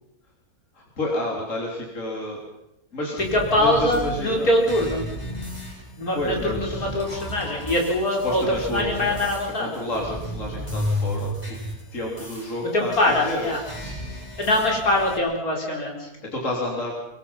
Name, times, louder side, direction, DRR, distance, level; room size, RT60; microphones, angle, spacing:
voice 1, 0.7-2.4 2.9-3.2 3.6-4.5 6.1-6.9 8.2-9.2 9.6-11.3 11.9-13.5 16.2-16.9, left 1 dB, 55° left, -2 dB, 3.9 m, -30 dB
sound 1, 3.2-15.2, equal, 20° left, 7.1 m, -34 dB
voice 2, 3.3-5.0 6.0-8.4 8.7-9.7 12.7-13.6 13.9-14.1 14.4-16.1, left 1 dB, 70° left, 0 dB, 5.1 m, -23 dB
25.0 x 22.5 x 5.6 m, 0.88 s
omnidirectional pair, 1.6 m